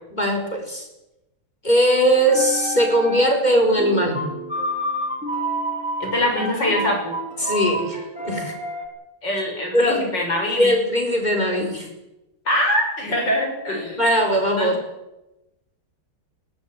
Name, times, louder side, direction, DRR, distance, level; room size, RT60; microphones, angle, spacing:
voice 1, 0.1-0.9 1.6-4.2 7.4-8.5 9.7-10.1 10.6-11.9 14.0-14.8, equal, 20° left, 2 dB, 4.9 m, -20 dB
sound 1, 2.2-3.5 3.8-8.9, equal, 5° right, 4.9 m, -29 dB
voice 2, 6.0-7.2 9.2-10.7 12.5-14.0 14.6-14.8, left 1 dB, 55° left, 2 dB, 7.1 m, -23 dB
19.5 x 18.5 x 9.1 m, 0.96 s
omnidirectional pair, 2.3 m